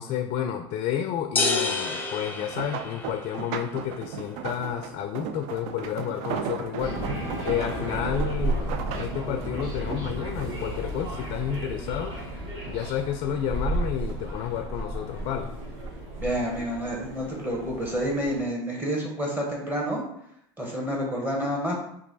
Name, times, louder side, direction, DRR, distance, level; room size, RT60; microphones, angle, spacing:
voice 1, 0.0-7.0 7.4-12.1 12.7-15.6, left 9 dB, 50° left, 6 dB, 0.4 m, -31 dB
sound 1, 1.4-3.4, left 3 dB, 15° left, 0.7 m, -28 dB
sound 2, 2.2-11.8 12.2-13.1 13.5-14.9 15.6-15.9 16.3-16.4, right 7 dB, 60° right, 0.4 m, -37 dB
sound 3, 6.8-18.4, right 1 dB, 45° right, 1.4 m, -33 dB
voice 2, 16.2-20.0 20.6-21.8, equal, 15° right, -2 dB, 1.3 m, -29 dB
3.0 x 2.6 x 4.0 m, 0.73 s
hypercardioid pair, 95°, 13 cm